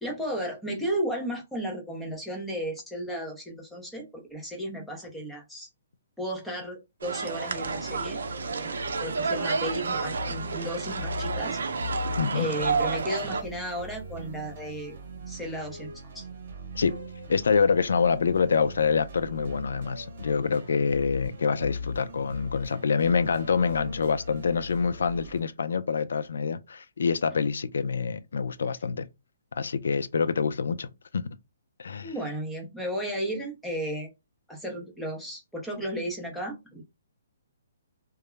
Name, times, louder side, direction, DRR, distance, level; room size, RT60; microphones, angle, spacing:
voice 1, 0.0-5.7 6.2-8.2 8.5-11.6 12.3-15.0 15.3-15.9 16.1-16.3 32.0-34.1 34.5-36.8, equal, 5° left, 0.5 m, -34 dB
sound 1, 7.0-13.4, right 5 dB, 80° right, 0.4 m, -30 dB
sound 2, 7.5-25.4, left 2 dB, 45° right, 0.9 m, -40 dB
voice 2, 12.2-12.5 16.8-17.0 17.3-29.1 29.6-31.4 31.8-32.1, left 5 dB, 75° left, 0.3 m, -26 dB
2.3 x 2.0 x 3.0 m
hypercardioid pair, 175°, 0 cm